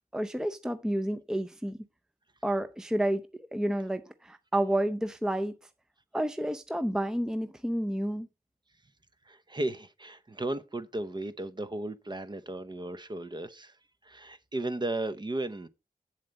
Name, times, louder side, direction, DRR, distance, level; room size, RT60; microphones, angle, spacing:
voice 1, 0.1-1.8 2.4-3.3 3.5-5.5 6.1-8.3, right 1 dB, 5° right, 0.6 m, -30 dB
voice 2, 9.2-13.8 14.0-15.7, right 2 dB, 30° right, 0.9 m, -35 dB
8.0 x 7.3 x 4.0 m
cardioid pair, 60°, 15 cm